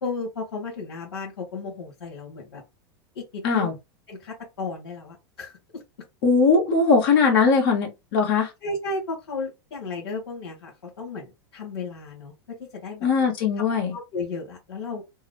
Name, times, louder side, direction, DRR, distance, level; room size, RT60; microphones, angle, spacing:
voice 1, 0.0-2.6 3.1-3.7 4.1-5.8 8.6-13.1 13.6-13.7 13.9-15.0, left 3 dB, 85° left, 1.5 m, -34 dB
voice 2, 6.2-8.5 13.0-13.9, left 4 dB, 60° left, 1.5 m, -20 dB
3.6 x 2.1 x 3.3 m
hypercardioid pair, 100°, 13 cm